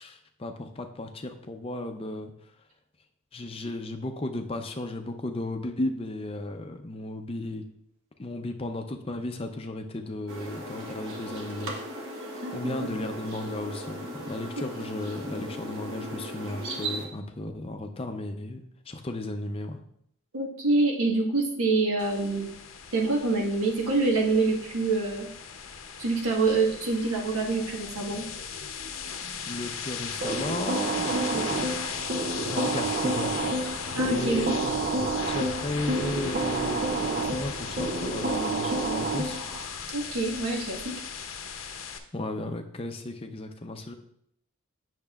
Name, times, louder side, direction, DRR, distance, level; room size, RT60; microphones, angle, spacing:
voice 1, 0.0-2.3 3.3-7.6 8.2-11.7 12.5-19.8 29.5-32.0 32.4-39.4 42.1-44.0, left 2 dB, 25° left, 5 dB, 0.5 m, -35 dB
sound 1, 10.3-17.1, right 1 dB, 60° right, 1.2 m, -37 dB
voice 2, 12.4-13.0 20.3-22.5 22.9-25.3 26.0-28.3 31.1-31.4 34.0-34.5 39.9-40.9, right 3 dB, 75° right, 0 dB, 1.3 m, -26 dB
sound 2, 22.0-42.0, left 6 dB, 70° left, 0.7 m, -37 dB
sound 3, 30.2-39.7, right 3 dB, 35° right, 0.4 m, -30 dB
8.7 x 6.4 x 2.4 m, 0.71 s
head